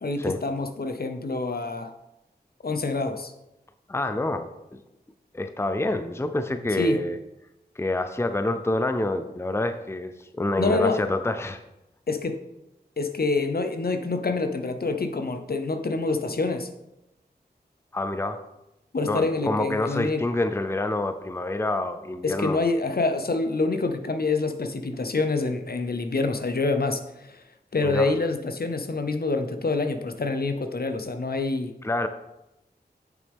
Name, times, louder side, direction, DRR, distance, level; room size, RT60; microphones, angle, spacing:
voice 1, 0.0-1.9 2.6-3.3 6.8-7.0 10.6-11.0 12.1-12.4 13.0-16.7 18.9-20.2 22.2-27.4 27.7-31.7, left 3 dB, 60° left, 7 dB, 0.8 m, -26 dB
voice 2, 3.9-4.5 5.3-7.2 7.8-11.6 17.9-18.4 19.0-22.6 27.8-28.1 31.8-32.1, left 2 dB, 15° left, 9 dB, 0.5 m, -27 dB
8.3 x 7.0 x 3.6 m, 0.91 s
wide cardioid pair, 55°, 17 cm